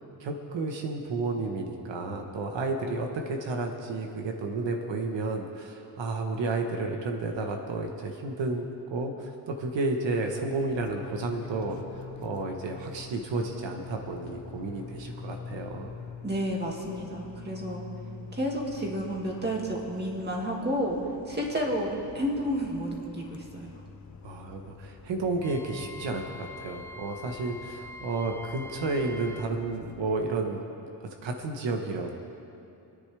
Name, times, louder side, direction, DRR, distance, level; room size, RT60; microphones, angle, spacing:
voice 1, 0.2-15.9 24.2-30.6 31.0-32.1, right 3 dB, 75° right, 3 dB, 1.3 m, -32 dB
Fixed-wing aircraft airplane, 10.5-30.2, left 6 dB, 40° left, 0.8 m, -46 dB
voice 2, 16.2-17.8 18.3-21.0 21.3-23.8, equal, 20° right, -1 dB, 2.3 m, -31 dB
Wind instrument woodwind instrument, 25.4-29.5, left 2 dB, 5° left, 0.4 m, -45 dB
27.0 x 9.9 x 3.5 m, 2.7 s
cardioid pair, 115°, 44 cm